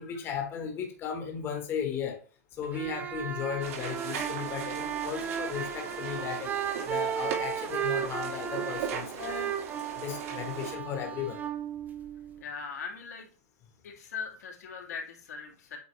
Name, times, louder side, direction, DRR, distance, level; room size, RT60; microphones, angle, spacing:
voice 1, 0.0-2.2 2.6-9.5 10.0-11.4, left 7 dB, 25° left, 1.3 m, -36 dB
sound 1, 2.6-12.4, right 8 dB, 20° right, 0.6 m, -35 dB
sound 2, 3.6-10.7, right 7 dB, 60° right, 2.2 m, -39 dB
voice 2, 12.4-13.3 13.8-15.8, left 5 dB, 80° left, 2.2 m, -40 dB
8.2 x 4.1 x 3.2 m
hypercardioid pair, 140°, 9 cm